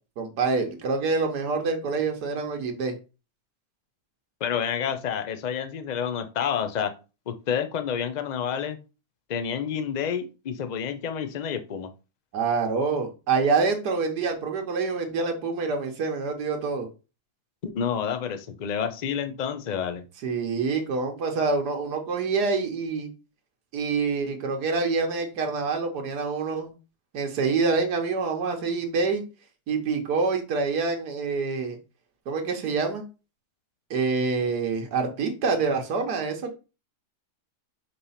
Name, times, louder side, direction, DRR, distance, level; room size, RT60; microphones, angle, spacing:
voice 1, 0.2-2.9 12.3-16.9 20.2-23.1 23.7-26.8 27.1-29.2 29.7-31.8 32.3-33.0 33.9-36.5, right 4 dB, 85° right, 1.6 m, -26 dB
voice 2, 4.4-6.9 7.3-8.8 9.3-11.9 17.6-20.0, left 8 dB, 55° left, 0.5 m, -29 dB
5.3 x 3.3 x 5.5 m
omnidirectional pair, 1.7 m